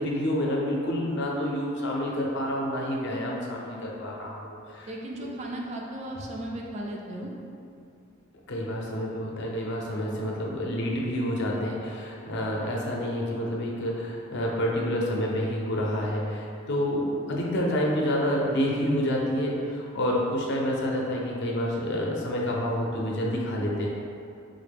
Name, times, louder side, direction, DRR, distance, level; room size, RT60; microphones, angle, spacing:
voice 1, 0.0-4.9 5.2-5.3 8.5-23.9, equal, 55° left, -2 dB, 0.5 m, -28 dB
voice 2, 4.9-7.3, right 1 dB, 35° right, -1 dB, 0.3 m, -35 dB
3.7 x 2.1 x 3.4 m, 2.5 s
head